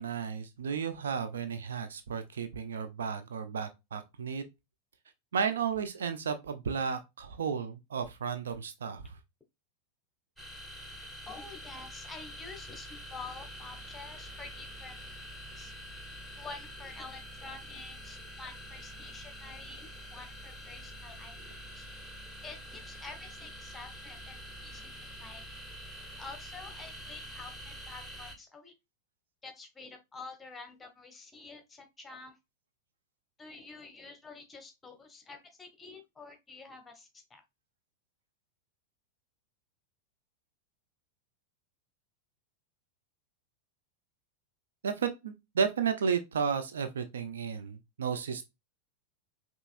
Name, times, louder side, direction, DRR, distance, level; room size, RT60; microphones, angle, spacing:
voice 1, 0.0-4.4 5.3-9.2 44.8-48.4, right 6 dB, 65° right, 0.6 m, -33 dB
sound 1, 10.4-28.4, equal, 10° right, 1.2 m, -46 dB
voice 2, 11.3-14.9 15.5-15.7 16.4-19.9 20.1-21.3 21.7-21.9 22.4-24.9 25.2-25.4 26.2-28.7 29.4-32.3 33.4-37.4, left 4 dB, 15° left, 1.2 m, -48 dB
5.4 x 3.1 x 2.5 m
figure-of-eight pair, 90°, 0 cm